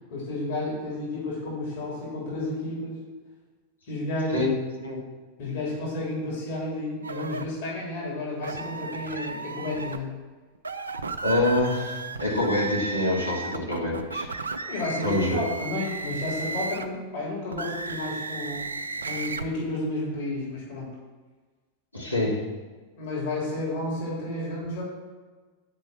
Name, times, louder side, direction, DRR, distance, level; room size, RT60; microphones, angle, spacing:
voice 1, 0.1-3.0 3.9-4.5 5.4-10.1 14.7-18.6 19.0-20.9 23.0-24.8, left 2 dB, 50° left, -5 dB, 3.4 m, -31 dB
sound 1, 7.0-7.4 8.4-10.0 10.5-17.0 17.5-19.5, right 3 dB, 75° right, 0.6 m, -34 dB
voice 2, 11.2-14.3 15.0-15.4 21.9-22.5, left 1 dB, 90° left, -6 dB, 2.9 m, -26 dB
9.8 x 5.5 x 7.3 m, 1.4 s
figure-of-eight pair, 90°, 0 cm